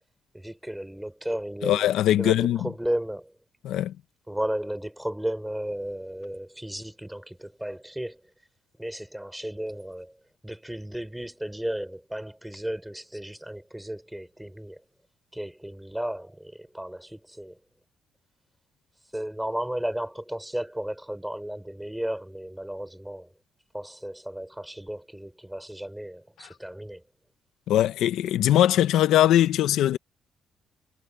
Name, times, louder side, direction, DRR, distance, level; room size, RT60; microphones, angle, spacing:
voice 1, 0.3-1.8 2.2-3.3 4.3-8.2 8.8-10.2 10.4-14.8 15.3-17.6 19.1-23.3 23.7-27.0, right 1 dB, 5° right, 4.3 m, -34 dB
voice 2, 1.6-2.7 3.6-3.9 27.7-30.0, left 12 dB, 85° left, 0.9 m, -21 dB
cardioid pair, 90°, 0 cm